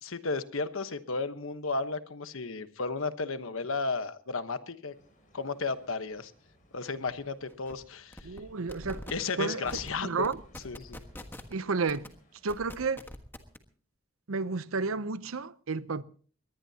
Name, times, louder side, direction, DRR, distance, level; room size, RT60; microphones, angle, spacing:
voice 1, 0.0-4.9 5.3-6.3 6.7-8.3 9.1-10.3 10.6-11.0, left 3 dB, 80° left, 1.2 m, -34 dB
sound 1, 4.9-12.5, equal, 40° left, 6.1 m, -62 dB
sound 2, 7.1-7.2 7.5-7.7 8.1-8.4 8.7-9.1 9.6-9.9 10.2-11.5 11.9-12.1 12.5-13.6, left 1 dB, 10° left, 1.4 m, -43 dB
voice 2, 8.2-9.1 9.4-9.7 10.0-10.4 11.5-12.1 12.4-13.0 14.3-16.0, right 4 dB, 85° right, 0.7 m, -31 dB
22.5 x 18.5 x 2.9 m
head